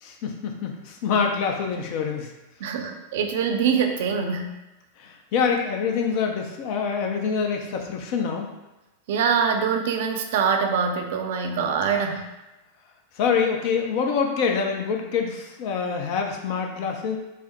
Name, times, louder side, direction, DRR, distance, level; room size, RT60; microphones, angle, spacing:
voice 1, 0.0-2.3 5.0-8.5 13.1-17.2, left 6 dB, 45° left, 3 dB, 0.5 m, -25 dB
voice 2, 2.6-4.5 9.1-12.2, right 6 dB, 55° right, 4 dB, 0.4 m, -24 dB
4.7 x 2.0 x 2.9 m, 1.0 s
figure-of-eight pair, 90°, 0 cm